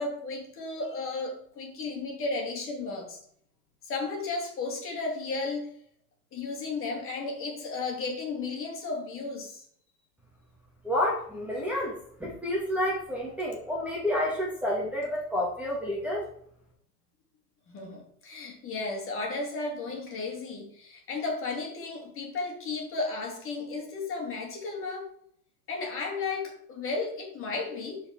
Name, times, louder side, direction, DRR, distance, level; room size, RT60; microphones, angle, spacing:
voice 1, 0.0-3.2 3.9-5.7 6.3-9.6 17.7-25.1 25.7-28.0, left 3 dB, 25° left, 0 dB, 3.0 m, -34 dB
voice 2, 10.8-16.3, left 1 dB, 5° right, -4 dB, 2.2 m, -29 dB
11.5 x 5.0 x 4.6 m, 0.65 s
hypercardioid pair, 125°, 48 cm